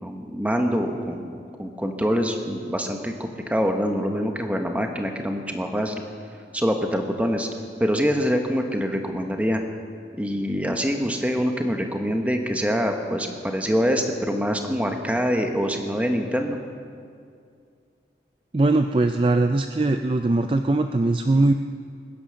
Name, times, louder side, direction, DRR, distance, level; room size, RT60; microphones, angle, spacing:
voice 1, 0.0-6.0 6.5-7.5 7.8-9.6 10.2-16.6, equal, 10° right, 4 dB, 1.2 m, -25 dB
voice 2, 18.5-21.5, right 2 dB, 30° right, 7 dB, 0.4 m, -20 dB
22.0 x 10.0 x 6.4 m, 2.3 s
head